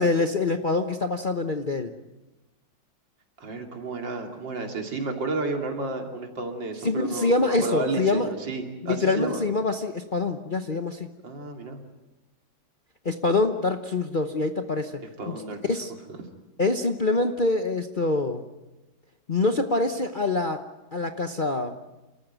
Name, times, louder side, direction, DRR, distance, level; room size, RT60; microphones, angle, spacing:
voice 1, 0.0-1.9 6.8-8.3 8.8-11.1 13.0-15.0 15.3-15.4 15.7-15.9 16.6-18.4 19.3-20.6 20.9-21.8, left 3 dB, 40° left, 6 dB, 0.8 m, -25 dB
voice 2, 3.4-9.4 11.2-11.8 15.2-15.8 16.1-16.2, right 3 dB, 80° right, 3 dB, 3.4 m, -32 dB
29.5 x 14.0 x 9.1 m, 1.1 s
omnidirectional pair, 2.0 m